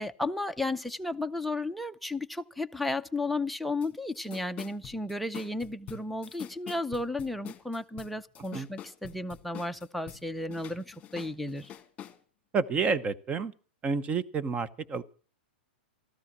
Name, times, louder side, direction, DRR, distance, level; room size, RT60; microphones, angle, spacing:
voice 1, 0.0-11.7, left 2 dB, ahead, 0.6 m, -33 dB
sound 1, 3.8-3.9 4.1-10.2 10.5-12.2, left 11 dB, 20° left, 2.1 m, -45 dB
voice 2, 12.5-13.5 13.8-15.0, right 5 dB, 20° right, 0.9 m, -29 dB
14.0 x 13.0 x 6.1 m
hypercardioid pair, 135°, 6 cm